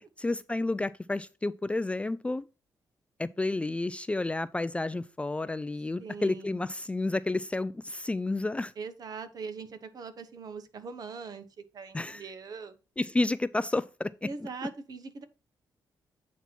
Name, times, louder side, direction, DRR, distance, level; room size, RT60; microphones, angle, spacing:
voice 1, 0.2-2.5 3.2-8.7 11.9-12.2 13.0-14.1, left 2 dB, 15° left, 0.3 m, -30 dB
voice 2, 6.0-6.6 8.8-12.8 14.2-15.2, right 4 dB, 55° right, 1.1 m, -41 dB
8.2 x 2.9 x 5.9 m
cardioid pair, 95°, 8 cm